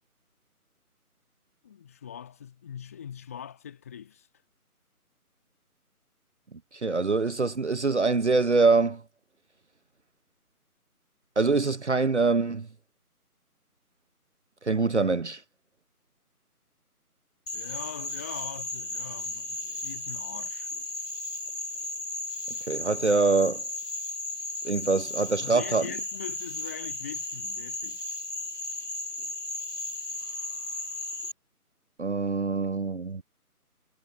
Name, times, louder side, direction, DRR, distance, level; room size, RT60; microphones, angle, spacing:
voice 1, 1.6-4.3 17.5-20.7 25.4-28.0, left 8 dB, 10° left, 1.6 m, -42 dB
voice 2, 6.7-9.0 11.4-12.7 14.6-15.4 22.7-23.6 24.6-25.9 32.0-33.2, right 3 dB, 50° right, 0.9 m, -24 dB
Frog, 17.5-31.3, left 2 dB, 85° left, 2.6 m, -35 dB
figure-of-eight pair, 160°, 46 cm